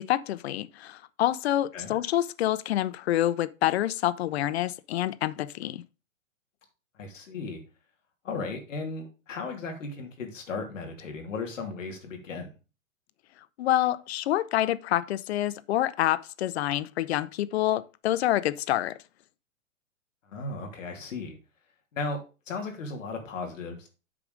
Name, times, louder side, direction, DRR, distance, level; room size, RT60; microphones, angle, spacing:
voice 1, 0.0-5.8 13.6-19.0, left 13 dB, 50° left, 0.7 m, -27 dB
voice 2, 6.9-7.6 8.2-12.5 20.2-21.4 21.9-22.2 22.5-23.9, left 3 dB, 65° left, 3.1 m, -36 dB
8.7 x 4.9 x 5.0 m
hypercardioid pair, 115°, 41 cm